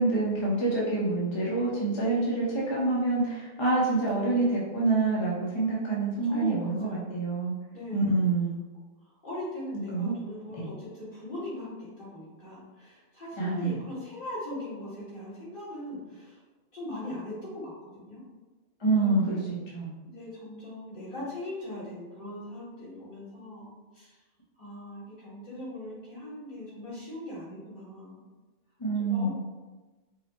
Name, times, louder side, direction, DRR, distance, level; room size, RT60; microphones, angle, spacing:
voice 1, 0.0-7.5 7.9-8.6 9.9-10.1 10.5-10.6 13.4-13.8 18.8-19.9 28.8-29.3, right 3 dB, 35° left, -5 dB, 0.6 m, -27 dB
voice 2, 6.3-7.1 7.7-8.1 9.2-16.4 16.7-18.2 19.0-19.4 20.0-24.2 24.6-28.2 29.0-29.3, left 1 dB, 50° left, -9 dB, 1.7 m, -40 dB
4.7 x 2.0 x 2.9 m, 1.2 s
omnidirectional pair, 1.0 m